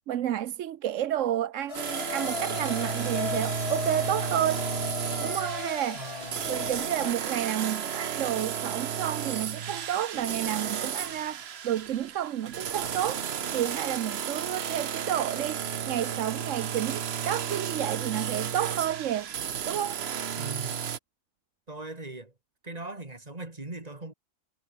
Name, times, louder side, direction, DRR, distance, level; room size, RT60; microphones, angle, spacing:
voice 1, 0.1-4.7 5.2-6.1 6.5-13.2 13.5-19.3 19.7-20.0, right 11 dB, 85° right, 1.1 m, -31 dB
sound 1, 1.7-7.1, left 7 dB, 55° left, 1.3 m, -36 dB
sound 2, 1.7-21.0, right 8 dB, 60° right, 1.1 m, -33 dB
voice 2, 5.9-6.5 20.4-20.9 21.7-22.3 22.6-24.1, right 2 dB, 30° right, 2.6 m, -40 dB
omnidirectional pair, 1.3 m